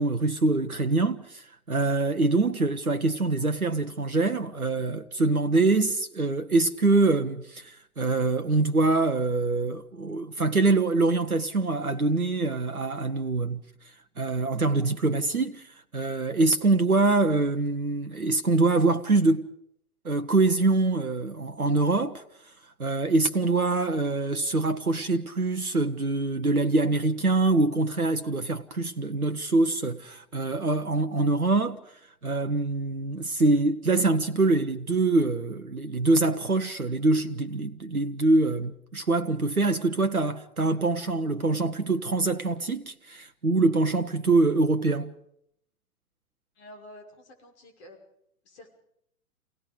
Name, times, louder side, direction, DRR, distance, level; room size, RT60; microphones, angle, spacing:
voice 1, 0.0-13.6 14.2-19.5 20.0-22.5 22.8-31.8 32.2-45.1, right 3 dB, 90° right, 1.1 m, -24 dB
voice 2, 46.6-48.0 48.4-48.7, left 1 dB, 50° left, 5.6 m, -49 dB
29.0 x 18.0 x 5.3 m
figure-of-eight pair, 110°, 42 cm